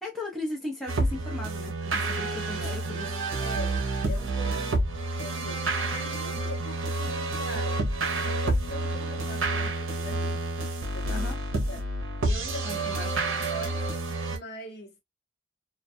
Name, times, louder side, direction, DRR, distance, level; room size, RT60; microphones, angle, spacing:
voice 1, 0.0-3.1 11.1-11.4 12.6-13.1, left 2 dB, ahead, 0.7 m, -37 dB
sound 1, 0.9-14.4, right 2 dB, 85° right, 0.7 m, -29 dB
voice 2, 2.4-2.7 3.4-4.8 5.2-7.9 8.3-10.4 10.9-11.3 11.7-11.9 12.2-13.1 13.5-13.9 14.3-15.0, left 1 dB, 55° left, 0.9 m, -42 dB
2.3 x 2.2 x 2.5 m
head